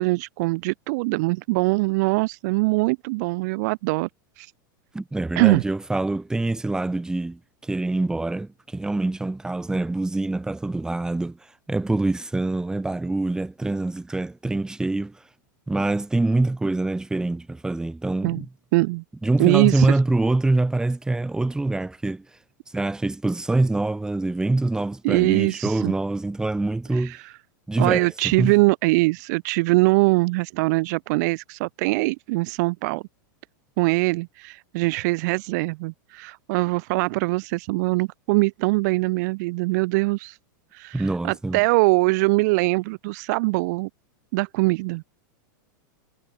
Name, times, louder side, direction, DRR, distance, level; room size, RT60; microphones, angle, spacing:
voice 1, 0.0-4.1 4.4-4.5 5.4-5.6 18.2-18.4 18.7-19.0 19.4-20.0 25.0-25.9 27.0-27.2 27.8-33.0 33.8-40.4 40.7-43.9 44.3-45.0, right 25 dB, 55° right, 0.7 m, -22 dB
voice 2, 4.9-11.4 11.7-15.2 15.7-18.5 19.2-22.2 22.7-27.2 27.7-28.5 40.9-41.6, right 2 dB, 5° right, 3.3 m, -25 dB
supercardioid pair, 135°, 11 cm